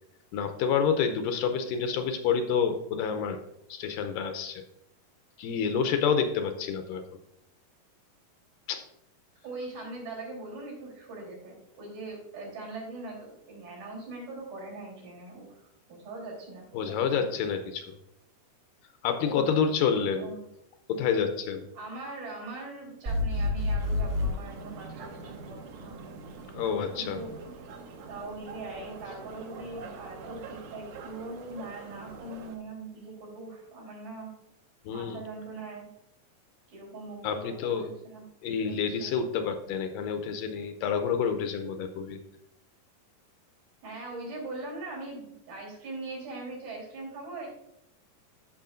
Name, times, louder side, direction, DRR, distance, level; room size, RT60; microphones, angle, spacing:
voice 1, 0.3-3.4 3.7-4.6 5.4-7.0 8.7-8.8 16.7-18.0 19.0-20.3 20.9-21.7 26.5-27.2 34.9-35.2 37.2-37.9 38.4-42.2, left 6 dB, 80° left, 7 dB, 2.1 m, -28 dB
voice 2, 9.4-17.3 19.2-19.6 20.0-20.4 21.8-26.2 27.0-27.5 28.1-34.3 34.9-35.9 36.7-38.2 38.5-39.1 41.7-41.8 43.8-47.5, right 2 dB, 85° right, -3 dB, 5.5 m, -41 dB
sound 1, 23.0-24.3, left 2 dB, 35° right, 1.2 m, -27 dB
sound 2, 23.8-32.6, right 4 dB, 65° right, 2.0 m, -44 dB
14.0 x 6.2 x 2.5 m, 0.81 s
omnidirectional pair, 4.2 m